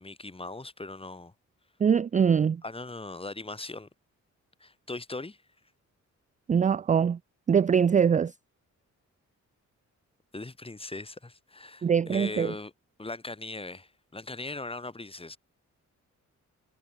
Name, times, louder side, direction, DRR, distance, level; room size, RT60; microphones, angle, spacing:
voice 1, 0.0-1.3 2.6-3.9 4.6-5.4 10.3-12.7 13.0-15.4, left 2 dB, 20° left, 6.7 m, -39 dB
voice 2, 1.8-2.6 6.5-7.2 7.5-8.3 11.8-12.5, right 7 dB, 25° right, 0.4 m, -23 dB
cardioid pair, 115°, 30 cm